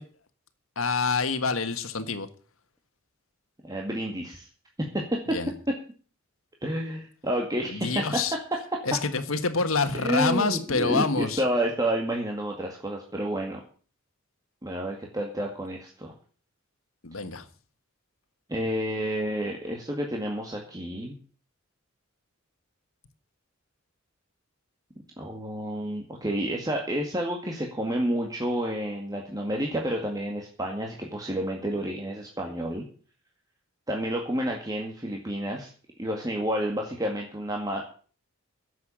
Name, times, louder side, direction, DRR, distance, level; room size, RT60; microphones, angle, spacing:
voice 1, 0.7-2.3 5.3-5.5 7.7-8.3 8.9-11.4 17.0-17.5, left 4 dB, 80° left, 1.6 m, -27 dB
voice 2, 3.6-4.5 4.8-5.4 5.7-5.8 6.6-8.0 8.3-8.4 9.9-13.6 14.6-16.1 18.5-21.2 25.2-32.8 33.9-35.7 36.0-37.9, right 1 dB, 20° right, 2.0 m, -30 dB
11.5 x 8.0 x 8.8 m
head